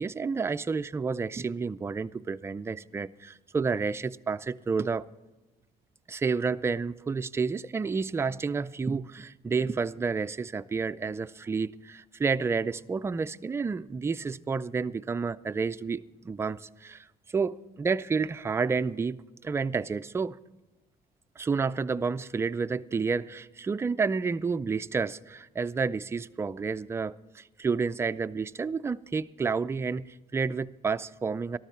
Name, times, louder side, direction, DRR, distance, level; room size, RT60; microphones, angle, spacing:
voice 1, 0.0-5.0 6.1-17.1 17.3-20.4 21.4-31.6, right 5 dB, 15° right, 0.3 m, -30 dB
13.5 x 13.0 x 4.4 m
cardioid pair, 110°, 17 cm